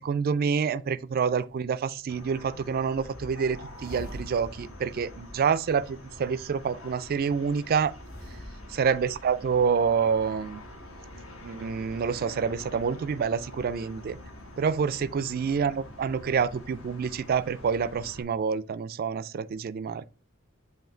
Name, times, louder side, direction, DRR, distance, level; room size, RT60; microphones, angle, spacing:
voice 1, 0.0-7.9 8.8-10.6 11.4-14.2 14.6-20.1, right 6 dB, 45° right, 0.3 m, -27 dB
sound 1, 2.1-18.2, left 1 dB, 75° left, 1.8 m, -45 dB
sound 2, 3.7-6.2 8.0-9.7, equal, 45° left, 3.5 m, -46 dB
7.9 x 2.7 x 4.4 m
head